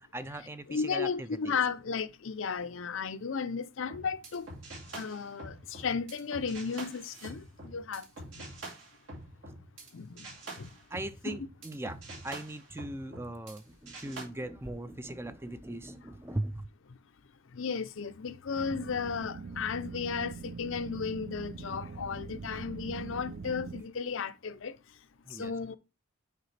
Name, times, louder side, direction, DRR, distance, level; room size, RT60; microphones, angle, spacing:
voice 1, 0.1-1.5 10.9-12.0 12.2-16.7 25.3-25.5, right 1 dB, 10° right, 0.3 m, -39 dB
voice 2, 0.7-4.5 4.9-8.0 9.9-10.3 10.6-10.7 11.2-11.5 17.5-24.8 25.4-25.8, left 5 dB, 75° left, 0.5 m, -34 dB
sound 1, 3.8-9.9 10.2-13.6 13.9-14.2, right 2 dB, 75° right, 2.4 m, -46 dB
sound 2, 18.5-23.8, right 4 dB, 55° right, 0.6 m, -42 dB
6.6 x 4.9 x 3.2 m
head